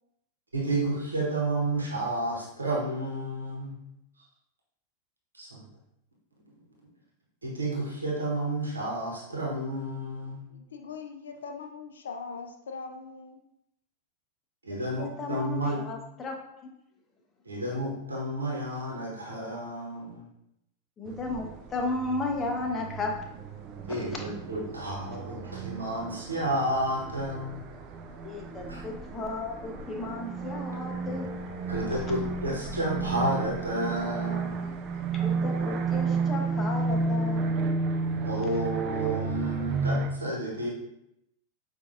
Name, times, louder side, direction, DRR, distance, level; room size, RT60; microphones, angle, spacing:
voice 1, 0.5-3.8 5.3-5.7 7.4-10.4 14.6-15.8 17.4-20.3 23.9-27.6 28.7-28.9 31.7-34.6 38.3-40.7, right 1 dB, 80° right, -4 dB, 1.0 m, -31 dB
voice 2, 10.5-13.4, left 5 dB, 65° left, 4 dB, 0.5 m, -41 dB
voice 3, 14.7-16.7 21.0-23.2 23.9-24.0 28.2-31.3 35.1-37.7, left 2 dB, 20° left, 1 dB, 0.7 m, -34 dB
sound 1, 21.1-40.1, right 4 dB, 35° right, 0.4 m, -32 dB
5.7 x 2.5 x 2.6 m, 0.81 s
figure-of-eight pair, 90°, 0 cm